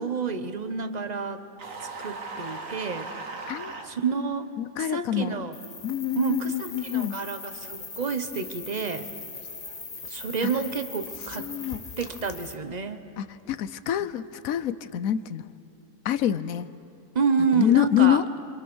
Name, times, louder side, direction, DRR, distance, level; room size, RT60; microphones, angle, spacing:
voice 1, 0.0-1.4 2.0-3.1 3.8-4.5 4.8-5.5 6.2-9.1 10.1-11.5 12.0-13.0 17.1-18.2, right 5 dB, 30° right, 10 dB, 1.1 m, -29 dB
sound 1, 1.6-3.9, right 3 dB, 65° right, 2.1 m, -37 dB
voice 2, 4.6-5.4 5.8-7.2 10.4-10.5 11.4-11.8 13.2-15.5 16.0-16.7 17.5-18.3, left 11 dB, 80° left, 15 dB, 1.2 m, -26 dB
sound 2, 5.5-12.5, left 4 dB, 30° left, 1.1 m, -40 dB
28.5 x 25.5 x 6.3 m, 2.9 s
omnidirectional pair, 1.5 m